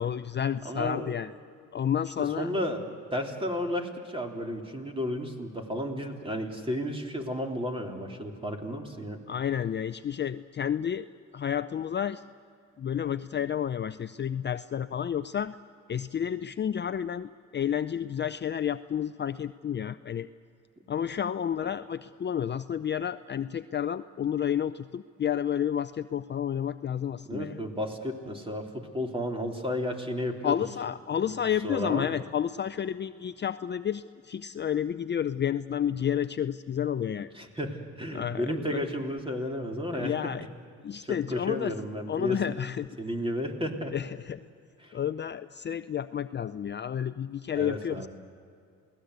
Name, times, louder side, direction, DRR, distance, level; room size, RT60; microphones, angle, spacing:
voice 1, 0.0-1.3 1.7-2.5 9.3-11.1 11.3-12.2 12.8-15.5 15.9-20.3 20.9-27.6 30.4-37.3 38.1-38.8 39.9-40.4 40.8-41.7 42.1-42.9 43.9-44.4 44.9-48.1, left 9 dB, 35° left, 12 dB, 0.5 m, -30 dB
voice 2, 0.6-1.1 2.2-2.8 3.1-9.2 27.3-30.6 31.6-32.1 37.3-40.2 41.0-42.6 43.0-43.9 44.8-44.9 47.5-48.1, equal, 20° right, 2 dB, 3.5 m, -33 dB
28.5 x 18.5 x 8.1 m, 2.4 s
cardioid pair, 90°, 30 cm